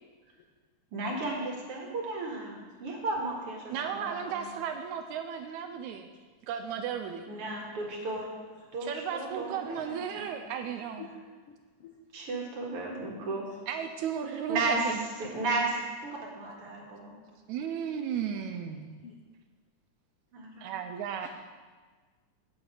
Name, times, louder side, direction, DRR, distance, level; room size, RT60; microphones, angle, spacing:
voice 1, 0.9-4.5 7.3-8.3 8.7-10.3 12.1-13.5 14.3-17.2 20.3-20.7, right 2 dB, 50° right, -2 dB, 2.4 m, -34 dB
voice 2, 3.7-6.1 6.5-7.3 8.8-11.1 13.7-15.1 17.5-18.9 20.6-21.3, right 8 dB, 80° right, 7 dB, 1.8 m, -35 dB
voice 3, 9.7-9.8 11.0-11.1 11.5-11.6 11.8-11.9 19.0-19.1, left 10 dB, 85° left, 2 dB, 1.3 m, -45 dB
9.6 x 8.7 x 4.9 m, 1.4 s
omnidirectional pair, 3.6 m